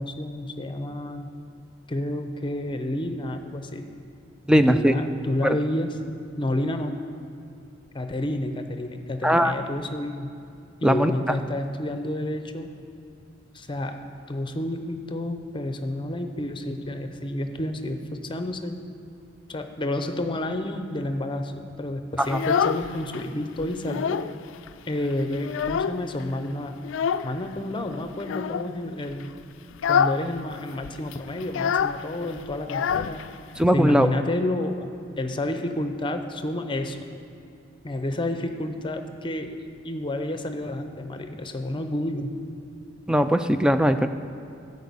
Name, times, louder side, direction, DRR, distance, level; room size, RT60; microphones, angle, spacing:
voice 1, 0.0-1.3 1.9-3.8 4.6-5.9 6.4-7.0 7.9-10.3 10.8-12.7 13.5-14.0 14.3-18.8 19.5-24.2 24.9-26.7 27.2-29.3 29.9-33.2 33.7-34.9 35.2-37.0 37.8-42.4, left 1 dB, 25° left, 7 dB, 0.7 m, -30 dB
voice 2, 4.5-4.9 5.4-5.5 9.2-9.5 10.8-11.1 22.3-22.4 33.6-34.1 43.1-44.1, equal, 5° right, 9 dB, 0.3 m, -19 dB
Child speech kid speaking, 22.2-23.2 23.6-24.4 24.7-24.8 25.1-26.2 26.8-27.3 28.2-28.7 29.1-29.3 29.7-30.3 30.5-30.6 30.8-33.6, left 7 dB, 85° left, 0.3 m, -26 dB
12.5 x 5.4 x 8.2 m, 2.5 s
head